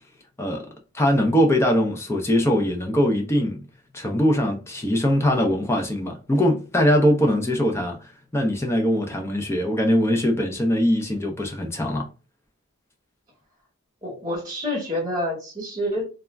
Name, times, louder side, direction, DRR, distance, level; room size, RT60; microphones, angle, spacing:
voice 1, 0.4-0.7 0.9-3.6 3.9-12.1, equal, 10° left, 0.4 m, -22 dB
voice 2, 14.0-16.1, left 1 dB, 15° right, 1.1 m, -28 dB
2.3 x 2.0 x 3.3 m
head